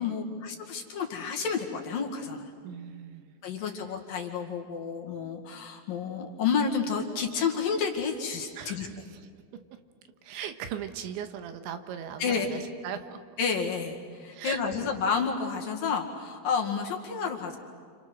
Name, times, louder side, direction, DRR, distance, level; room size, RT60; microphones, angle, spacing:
voice 1, 0.0-2.5 3.4-8.9 12.2-12.5 13.4-17.6, left 6 dB, 55° left, 2 dB, 3.3 m, -30 dB
voice 2, 2.6-3.7 8.6-9.3 10.2-13.2 14.3-14.8, right 8 dB, 80° right, 8 dB, 3.6 m, -39 dB
29.5 x 28.5 x 6.4 m, 2.1 s
omnidirectional pair, 5.3 m